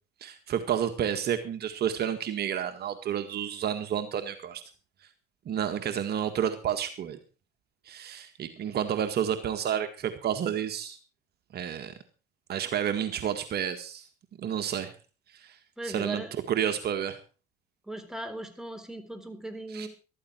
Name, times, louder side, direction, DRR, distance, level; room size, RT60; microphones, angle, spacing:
voice 1, 0.2-4.6 5.4-7.2 7.8-11.0 11.5-11.9 12.5-14.1 14.4-14.9 15.3-15.6 15.8-16.2 16.5-17.2 19.7-19.9, right 9 dB, 50° right, 8 dB, 1.8 m, -30 dB
voice 2, 15.8-16.3 17.8-19.9, right 1 dB, ahead, 7 dB, 4.0 m, -38 dB
14.5 x 13.0 x 4.4 m, 0.34 s
supercardioid pair, 85°, 21 cm